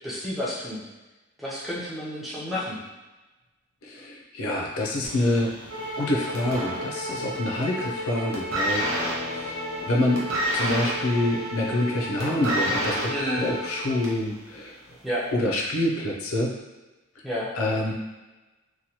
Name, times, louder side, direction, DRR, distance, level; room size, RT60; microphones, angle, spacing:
voice 1, 0.0-0.8 1.4-2.8 13.1-13.5 15.0-15.2 17.2-17.5, equal, ahead, -8 dB, 0.5 m, -30 dB
voice 2, 3.8-5.5 6.0-9.5 9.9-10.2 10.5-13.0 13.4-14.8 15.3-16.5 17.5-17.9, left 1 dB, 85° left, -1 dB, 0.6 m, -26 dB
sound 1, 5.0-7.4 7.7-8.0 8.3-14.3 15.1-15.2, equal, 85° right, 0.7 m, -30 dB
sound 2, 5.7-14.1, left 1 dB, 65° right, 1.0 m, -34 dB
sound 3, 8.8-13.1, left 3 dB, 35° right, 0.9 m, -43 dB
3.0 x 2.2 x 2.8 m, 1.1 s
head